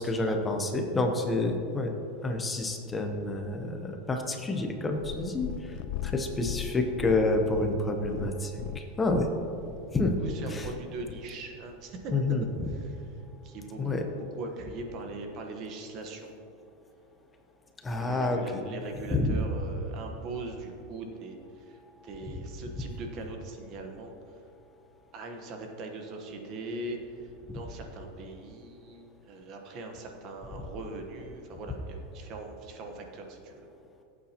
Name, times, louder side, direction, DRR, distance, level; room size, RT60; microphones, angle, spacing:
voice 1, 0.0-1.9 2.2-5.7 6.0-9.3 9.9-10.1 10.5-10.7 12.1-12.4 13.8-14.0 17.8-18.4 19.1-19.3, left 2 dB, 10° left, 4 dB, 0.8 m, -28 dB
Purr, 4.9-11.3 12.0-12.1, left 11 dB, 50° left, 0.4 m, -39 dB
voice 2, 10.2-12.1 12.7-13.1 13.4-16.3 18.0-24.1 25.1-27.0 27.2-33.6, right 2 dB, 40° right, 3 dB, 1.1 m, -41 dB
16.5 x 8.5 x 2.9 m, 2.6 s
supercardioid pair, 160°, 0 cm